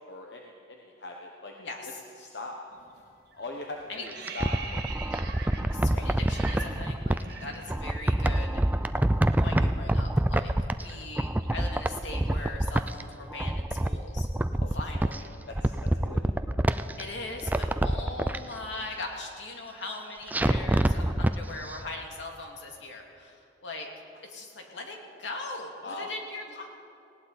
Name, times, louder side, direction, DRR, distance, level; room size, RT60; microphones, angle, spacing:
voice 1, 0.1-1.5 1.8-2.6 2.9-3.0 3.3-4.8 5.6-6.1 10.6-10.7 14.6-14.8 15.0-15.1 15.5-16.2 25.8-26.1, left 2 dB, 65° left, 1 dB, 1.1 m, -41 dB
voice 2, 1.6-2.0 3.9-4.1 5.7-8.7 9.4-14.3 14.7-15.3 17.0-23.9 24.2-26.7, left 2 dB, 80° left, 1 dB, 2.3 m, -40 dB
sound 1, 2.7-3.0 3.3-8.3 8.5-8.7 9.0-13.1, right 4 dB, 60° right, 1.6 m, -43 dB
sound 2, 4.1-7.2 7.7-10.9 11.2-13.0 13.3-15.2 15.5-17.0 17.4-18.4 20.3-21.3 21.7-21.8, right 1 dB, 10° right, 0.4 m, -26 dB
19.5 x 17.0 x 4.2 m, 2.7 s
head